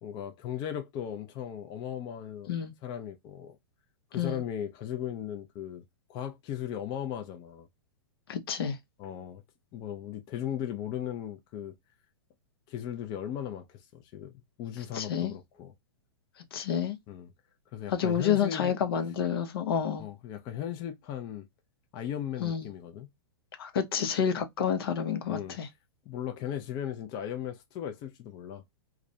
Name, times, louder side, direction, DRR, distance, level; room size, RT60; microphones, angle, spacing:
voice 1, 0.0-2.5 2.8-3.6 4.1-5.8 6.1-7.7 9.0-9.4 9.7-11.7 12.7-14.3 14.6-15.7 17.1-17.3 17.7-18.7 20.0-21.5 21.9-23.1 25.3-25.6 26.1-28.6, left 10 dB, 30° left, 0.4 m, -37 dB
voice 2, 8.3-8.8 14.9-15.3 16.5-17.0 17.9-20.1 22.4-22.7 23.6-25.7, left 8 dB, 70° left, 0.7 m, -29 dB
2.3 x 2.1 x 2.6 m
hypercardioid pair, 125°, 13 cm